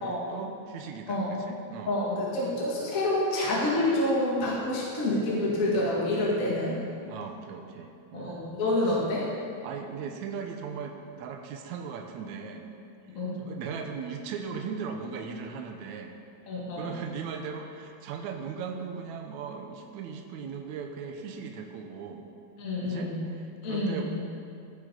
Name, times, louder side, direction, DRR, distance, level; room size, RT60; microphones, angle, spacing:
voice 1, 0.0-2.0 7.1-8.4 8.8-8.9 9.6-12.7 13.4-16.2 16.7-22.3 22.8-24.1, right 6 dB, 70° right, 3 dB, 2.2 m, -38 dB
voice 2, 1.9-6.8 8.1-9.3 13.1-13.4 16.5-16.9 22.6-23.2 23.6-24.1, left 1 dB, 30° left, -5 dB, 2.0 m, -28 dB
15.5 x 9.9 x 4.0 m, 2.4 s
omnidirectional pair, 3.6 m